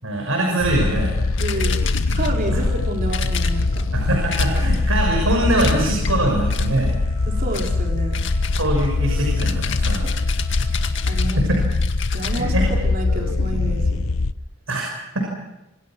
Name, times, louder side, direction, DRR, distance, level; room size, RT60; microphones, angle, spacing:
voice 1, 0.0-1.2 2.5-2.6 3.9-6.9 8.6-10.0 11.4-11.6 12.2-12.6 14.7-14.9, right 1 dB, 70° right, 0 dB, 6.4 m, -22 dB
sound 1, 0.6-14.3, left 3 dB, 85° left, 0.8 m, -22 dB
sound 2, 1.4-2.5 3.1-3.9 4.3-4.9 5.6-6.2 6.5-6.9 7.5-7.8 8.1-12.5, left 9 dB, 55° left, 2.0 m, -32 dB
voice 2, 1.4-1.8 2.1-3.9 4.5-4.6 7.3-8.2 10.0-10.1 11.1-11.5 12.1-14.0, right 1 dB, 40° right, 1 dB, 4.7 m, -29 dB
Wind instrument woodwind instrument, 2.2-11.6, right 6 dB, 20° right, 7.8 m, -49 dB
27.5 x 26.0 x 6.2 m, 0.92 s
head